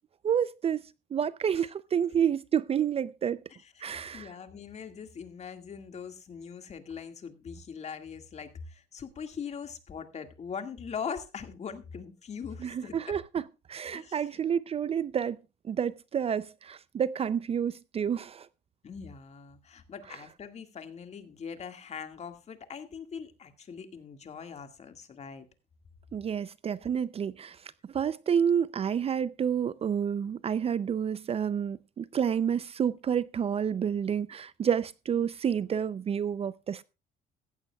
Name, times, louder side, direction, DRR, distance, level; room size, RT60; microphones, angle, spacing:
voice 1, 0.2-0.8 1.1-3.4 3.8-4.3 12.6-13.4 13.7-15.4 15.6-18.5 26.1-27.6 27.9-36.8, right 8 dB, 35° right, 0.5 m, -29 dB
voice 2, 3.6-13.2 13.9-14.3 18.8-25.5, left 6 dB, 40° left, 2.0 m, -41 dB
15.5 x 15.0 x 2.3 m
cardioid pair, 110°, 17 cm